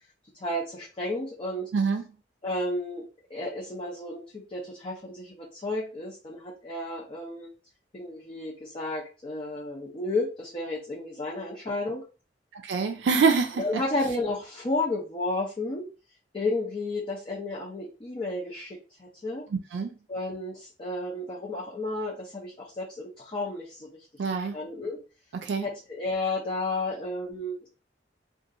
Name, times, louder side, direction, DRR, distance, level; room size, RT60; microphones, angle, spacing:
voice 1, 0.3-1.7 2.4-7.5 7.9-12.0 13.5-15.9 16.3-19.4 20.1-25.0 25.6-27.7, left 2 dB, 30° left, 0.6 m, -32 dB
voice 2, 12.5-13.8 19.7-19.9 24.2-24.6 25.3-25.7, right 5 dB, 75° right, 0.4 m, -25 dB
2.8 x 2.5 x 2.5 m
head